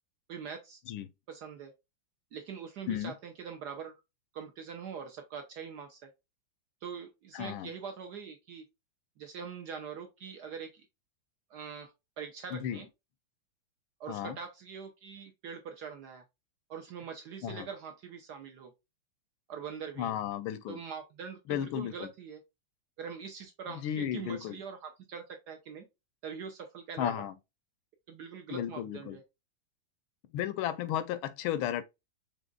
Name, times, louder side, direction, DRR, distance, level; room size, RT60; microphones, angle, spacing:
voice 1, 0.3-0.8 1.3-1.7 2.3-4.0 4.3-6.1 6.8-8.7 9.2-10.9 11.5-12.9 14.0-16.2 16.7-18.7 19.5-20.1 20.7-22.4 23.0-25.9 26.2-27.2 28.1-29.2, right 6 dB, 65° right, 1.0 m, -43 dB
voice 2, 7.3-7.7 12.5-12.8 14.1-14.4 17.4-17.7 20.0-20.8 21.5-22.1 23.7-24.6 27.0-27.3 28.5-29.2 30.3-31.8, left 10 dB, 80° left, 1.4 m, -34 dB
5.1 x 3.7 x 2.2 m
omnidirectional pair, 2.4 m